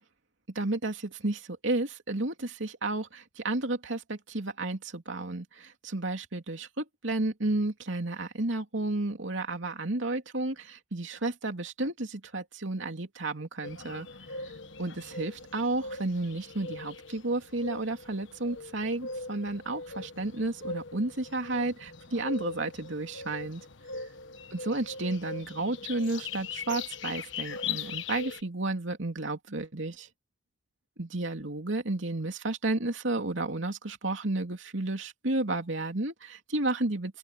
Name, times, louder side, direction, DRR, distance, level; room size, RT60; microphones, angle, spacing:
voice 1, 0.5-14.1 14.8-23.6 24.5-30.1 31.0-37.2, right 2 dB, 75° right, 2.7 m, -32 dB
sound 1, 13.6-28.4, left 4 dB, 75° left, 1.3 m, -40 dB
open air
head